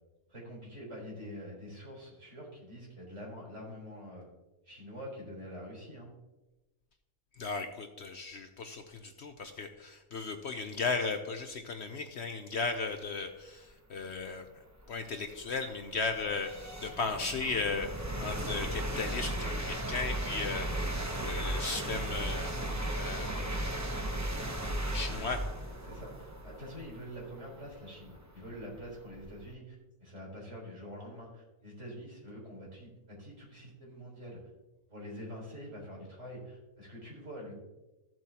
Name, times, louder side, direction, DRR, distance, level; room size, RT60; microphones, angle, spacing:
voice 1, 0.3-4.3 4.6-6.1 25.1-25.3 25.9-34.4 34.9-37.6, equal, 55° right, -4 dB, 4.3 m, -46 dB
voice 2, 7.4-14.5 14.9-22.5 23.0-23.6 24.9-25.4, left 4 dB, 55° left, 6 dB, 0.9 m, -36 dB
sound 1, 14.0-14.1 14.7-29.5, right 1 dB, 15° right, 0.6 m, -36 dB
14.5 x 7.6 x 2.9 m, 1.0 s
omnidirectional pair, 1.5 m